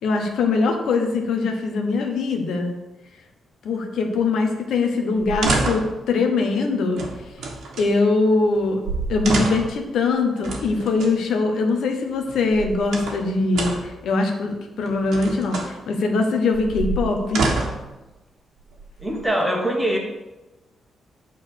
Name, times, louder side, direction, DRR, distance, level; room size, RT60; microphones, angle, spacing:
voice 1, 0.0-2.7 3.6-7.0 7.8-8.8 9.1-17.5, left 3 dB, 75° left, 3 dB, 1.2 m, -22 dB
sound 1, 5.2-6.0 6.9-7.9 8.6-8.7 8.8-9.8 10.4-11.1 12.3-13.2 13.5-14.0 14.9-15.7 16.5-17.9 18.7-19.4, right 3 dB, 80° right, 1.5 m, -27 dB
voice 2, 19.0-20.0, right 1 dB, 5° right, 0 dB, 1.4 m, -22 dB
8.8 x 4.3 x 6.5 m, 1.1 s
wide cardioid pair, 175°, 0 cm